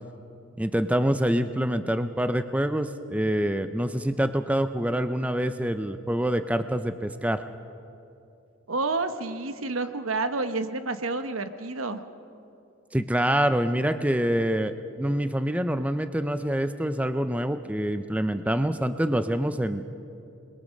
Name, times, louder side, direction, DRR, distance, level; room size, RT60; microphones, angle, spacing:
voice 1, 0.6-7.4 12.9-19.9, right 1 dB, 5° right, 9 dB, 0.5 m, -26 dB
voice 2, 8.7-12.0, right 3 dB, 85° right, 9 dB, 1.1 m, -29 dB
28.0 x 22.0 x 5.3 m, 2.7 s
head